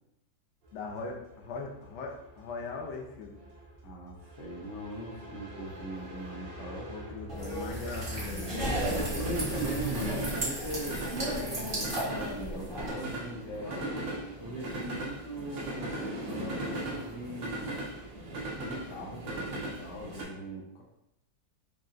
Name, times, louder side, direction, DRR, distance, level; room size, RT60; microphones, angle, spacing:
voice 1, 0.7-3.3 6.9-8.7, left 4 dB, 90° left, 1 dB, 0.6 m, -40 dB
sound 1, 0.7-20.2, right 1 dB, 85° right, 1.6 m, -39 dB
voice 2, 3.8-6.9 8.7-13.9 14.4-17.8 18.6-20.8, right 1 dB, 70° left, -2 dB, 1.4 m, -40 dB
sound 2, 7.3-12.9, equal, 35° right, 1.2 m, -35 dB
5.5 x 2.3 x 2.5 m, 0.85 s
omnidirectional pair, 2.0 m